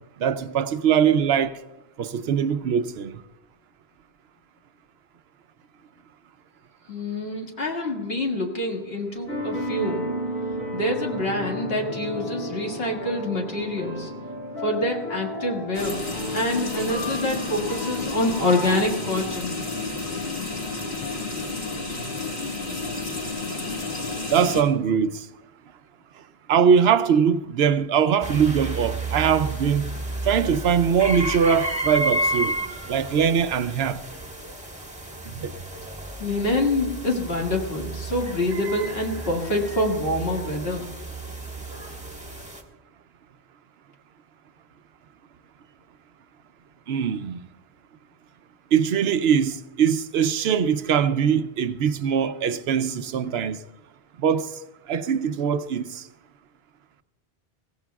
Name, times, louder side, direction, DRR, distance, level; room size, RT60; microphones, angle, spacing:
voice 1, 0.2-1.6 2.0-3.1 24.3-25.3 26.5-30.0 30.2-32.6 32.9-34.0 35.3-35.5 46.9-47.4 48.7-53.6 54.2-54.5 54.9-56.0, right 7 dB, 75° right, 0.8 m, -22 dB
voice 2, 6.9-10.0 10.7-14.1 14.6-16.0 16.3-19.6 36.2-40.9, left 1 dB, 70° left, 2.2 m, -26 dB
sound 1, 9.3-18.8, equal, 85° left, 6.2 m, -33 dB
sound 2, 15.7-24.6, left 3 dB, 55° left, 2.1 m, -31 dB
sound 3, 28.2-42.6, right 1 dB, 5° right, 1.4 m, -32 dB
21.5 x 16.5 x 2.3 m
omnidirectional pair, 1.1 m